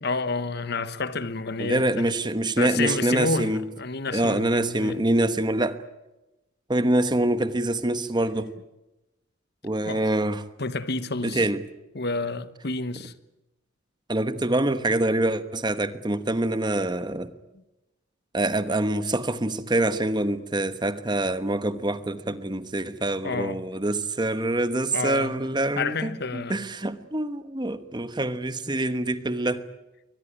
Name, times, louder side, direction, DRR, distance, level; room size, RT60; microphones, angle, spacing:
voice 1, 0.0-2.1 2.6-5.0 9.8-10.1 10.6-11.5 11.9-13.1 23.2-23.6 24.9-25.3 25.8-26.6, left 3 dB, 55° left, 1.2 m, -29 dB
voice 2, 1.6-3.6 4.1-5.8 6.7-8.5 9.6-10.4 11.2-11.6 14.1-17.3 18.3-29.6, right 1 dB, 20° right, 1.1 m, -25 dB
23.5 x 20.5 x 10.0 m
head